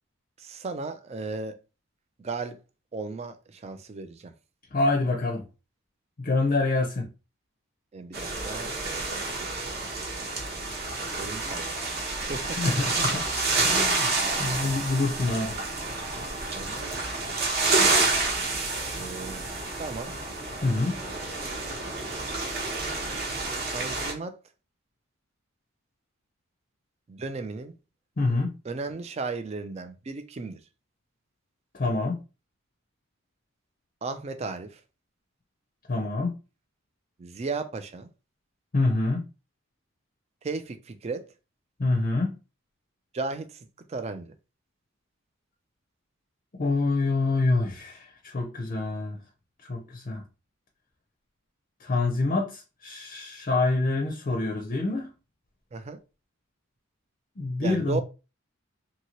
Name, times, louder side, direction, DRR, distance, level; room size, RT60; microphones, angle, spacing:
voice 1, 0.4-1.6 2.2-2.6 2.9-4.3 7.9-8.8 9.4-9.6 11.0-11.7 12.3-12.6 12.9-13.0 14.3-14.8 16.5-17.0 18.9-19.5 19.8-20.1 23.7-24.4 27.1-27.7 28.6-30.6 34.0-34.8 37.2-38.1 40.4-41.3 43.1-44.3 55.7-56.0 57.6-58.0, right 3 dB, 30° right, 0.3 m, -35 dB
voice 2, 4.7-5.4 6.2-7.1 12.6-13.2 13.6-14.1 14.4-15.6 20.6-20.9 28.2-28.5 31.7-32.2 35.9-36.4 38.7-39.2 41.8-42.4 46.6-49.2 49.7-50.2 51.8-55.1 57.4-58.0, left 2 dB, 40° left, 0.5 m, -26 dB
sound 1, 8.1-24.1, right 3 dB, 50° right, 0.9 m, -29 dB
2.8 x 2.7 x 2.9 m
head